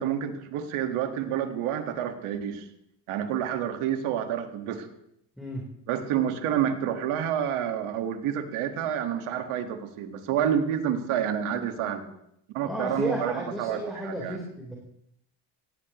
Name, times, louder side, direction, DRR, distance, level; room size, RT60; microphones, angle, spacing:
voice 1, 0.0-2.7 3.1-4.9 5.9-12.1 12.5-14.4, right 9 dB, 80° right, 6 dB, 1.9 m, -29 dB
voice 2, 12.6-14.8, equal, ahead, -2 dB, 4.0 m, -33 dB
17.5 x 17.0 x 3.1 m, 0.76 s
cardioid pair, 90°, 50 cm